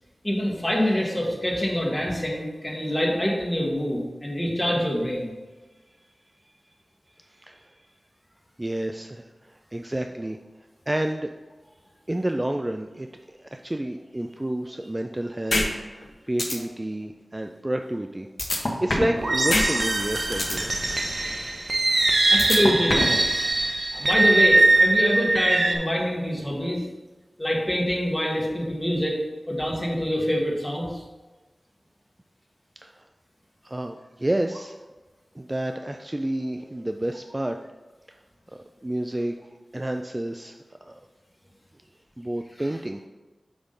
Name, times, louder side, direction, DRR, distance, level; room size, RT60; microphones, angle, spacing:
voice 1, 0.2-5.3 22.3-23.2 23.9-26.8 27.4-29.2 29.5-31.0, equal, 15° left, -2 dB, 1.6 m, -25 dB
voice 2, 7.3-7.8 8.6-10.4 10.9-11.3 12.1-20.7 32.8-33.0 33.6-34.8 35.4-37.6 38.5-39.3 39.7-40.5 40.8-41.0 42.2-43.0, right 1 dB, 20° right, 5 dB, 0.3 m, -30 dB
sound 1, 15.5-15.7 16.0-16.1 16.4-16.5 18.4-19.2 19.5-19.7 20.0-20.6 22.4-23.2, left 2 dB, 60° left, 1.1 m, -23 dB
sound 2, 19.2-25.8, right 2 dB, 60° right, 0.7 m, -22 dB
8.0 x 3.7 x 3.8 m, 1.2 s
wide cardioid pair, 85°, 0 cm